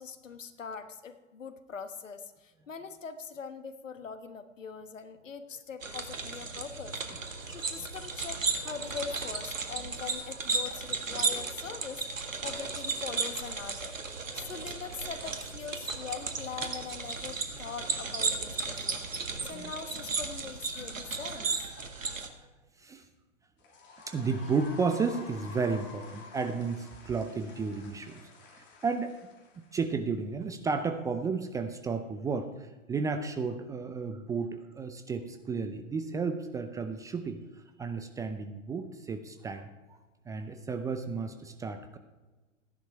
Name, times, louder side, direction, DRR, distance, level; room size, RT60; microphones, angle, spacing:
voice 1, 0.0-7.0 7.5-14.0 14.3-19.0 19.4-21.5, left 6 dB, 75° left, 9 dB, 1.4 m, -42 dB
sound 1, 5.8-22.3, right 4 dB, 80° right, 1.8 m, -35 dB
sound 2, 23.6-29.9, left 3 dB, 30° left, 3.1 m, -50 dB
voice 2, 24.1-28.2 28.5-29.1 29.6-37.4 37.8-39.7 40.3-42.0, right 4 dB, 10° right, 7 dB, 0.5 m, -33 dB
15.5 x 11.0 x 4.7 m, 1.2 s
figure-of-eight pair, 110°, 38 cm